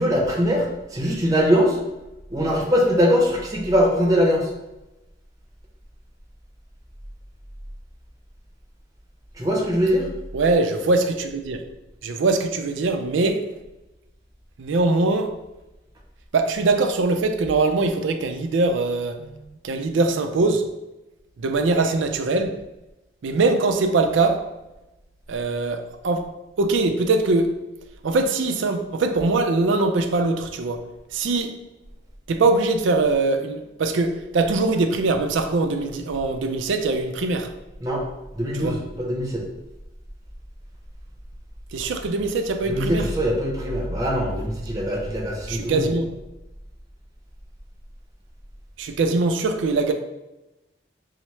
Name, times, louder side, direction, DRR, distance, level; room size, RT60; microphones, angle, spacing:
voice 1, 0.0-1.8 2.3-4.5 9.4-10.1 37.8-38.0 38.3-39.4 42.7-45.9, equal, 20° right, -2 dB, 0.6 m, -22 dB
voice 2, 10.3-11.6 12.0-13.5 14.6-15.3 16.3-20.7 21.4-22.6 23.2-24.5 25.3-26.3 26.6-27.5 28.0-30.8 31.1-31.6 32.3-37.5 38.5-38.8 41.7-43.1 45.5-46.2 48.8-49.9, right 3 dB, 85° right, 6 dB, 0.4 m, -22 dB
5.5 x 2.0 x 3.1 m, 0.98 s
head